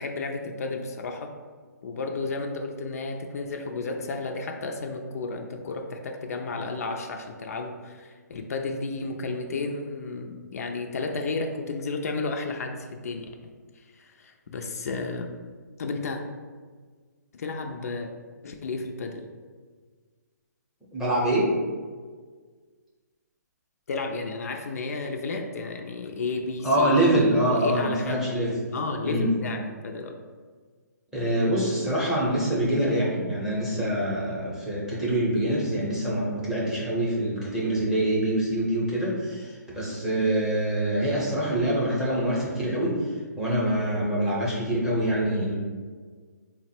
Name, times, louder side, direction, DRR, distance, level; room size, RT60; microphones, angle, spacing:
voice 1, 0.0-1.3 1.8-13.3 13.8-15.3 15.8-16.2 17.3-18.1 18.4-19.3 23.9-28.2 28.7-30.2, left 3 dB, 55° left, 3 dB, 0.4 m, -32 dB
voice 2, 20.9-21.6 26.6-28.6 29.0-29.3 31.1-43.1 43.4-45.6, right 1 dB, 5° right, -7 dB, 0.7 m, -25 dB
3.9 x 2.0 x 4.2 m, 1.5 s
hypercardioid pair, 155°, 10 cm